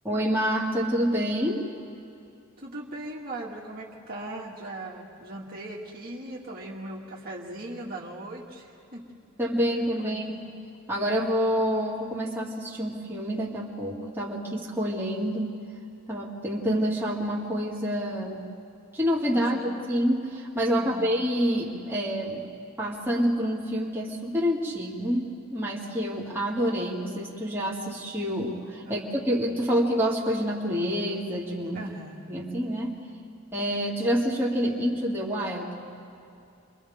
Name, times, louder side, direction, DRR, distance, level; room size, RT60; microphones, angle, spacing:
voice 1, 0.0-1.7 9.4-10.5 10.9-15.5 16.1-18.5 18.9-22.5 22.8-31.8 32.3-33.0 33.5-35.8, equal, 10° right, -6 dB, 2.5 m, -27 dB
voice 2, 2.6-9.0 10.0-10.2 19.3-19.8 20.7-21.2 28.8-29.1 31.7-32.3, right 1 dB, 45° right, -3 dB, 2.3 m, -39 dB
29.5 x 24.5 x 3.7 m, 2.6 s
head